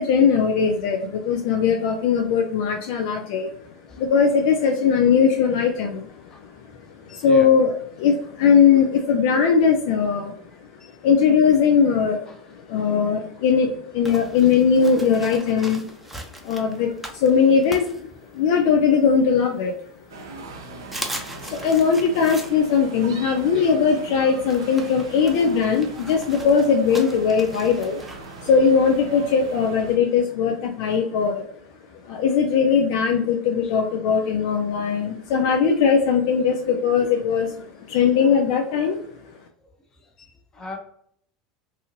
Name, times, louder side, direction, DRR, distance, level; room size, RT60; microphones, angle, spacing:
voice 1, 0.0-3.5 4.0-6.1 7.1-7.7 8.0-10.3 11.0-12.3 12.5-15.8 16.4-18.1 18.3-19.7 21.4-28.0 28.4-31.5 32.1-39.0, left 6 dB, 70° left, 3 dB, 0.4 m, -19 dB
voice 2, 6.2-6.7 7.0-7.5 10.8-11.0 12.3-12.9 16.8-17.0 23.5-23.6 26.4-26.6 28.4-28.5 32.0-32.3 33.6-33.8 37.9-38.1 39.6-40.8, left 3 dB, 30° left, 1 dB, 0.9 m, -42 dB
sound 1, 14.0-18.7 19.1-20.1 20.5-20.6 20.8-29.6, right 1 dB, 5° right, 0.6 m, -40 dB
sound 2, 20.1-30.0, right 3 dB, 85° right, 0.5 m, -40 dB
2.7 x 2.6 x 2.6 m, 0.66 s
hypercardioid pair, 85°, 2 cm